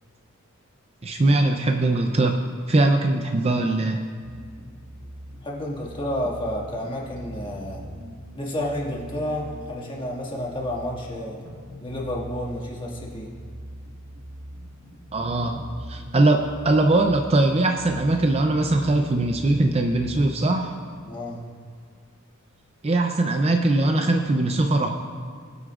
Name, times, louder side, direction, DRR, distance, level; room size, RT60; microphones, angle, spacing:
voice 1, 1.0-2.4 2.7-4.0 15.1-15.6 15.9-20.8 22.8-24.9, right 2 dB, 30° right, 4 dB, 0.5 m, -21 dB
sound 1, 4.2-20.3, equal, 65° right, 1.6 m, -41 dB
voice 2, 5.4-7.9 8.3-11.4 11.8-13.3 15.4-15.5 21.0-21.4, left 1 dB, 25° left, -3 dB, 2.0 m, -30 dB
22.0 x 8.1 x 2.5 m, 2.1 s
head